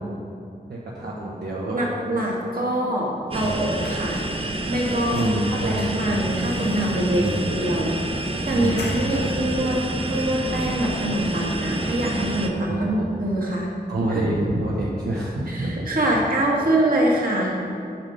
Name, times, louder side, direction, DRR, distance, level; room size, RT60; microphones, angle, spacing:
voice 1, 0.7-1.9 3.4-3.7 5.1-5.8 7.2-7.6 8.5-9.4 12.7-13.1 13.9-15.9, right 1 dB, 75° right, -5 dB, 1.0 m, -27 dB
voice 2, 1.7-4.2 4.7-5.2 5.5-8.0 8.5-9.8 10.0-13.7 14.1-14.3 15.5-17.6, right 1 dB, 60° right, -3 dB, 1.7 m, -24 dB
sound 1, 3.3-4.6 4.9-9.4 9.7-9.8 10.1-11.0 11.3-11.5 11.8-12.5 12.8-13.0, left 2 dB, 90° left, 1.0 m, -43 dB
sound 2, 3.3-12.5, right 2 dB, 35° right, 0.7 m, -28 dB
8.7 x 5.4 x 5.2 m, 2.6 s
wide cardioid pair, 75°, 17 cm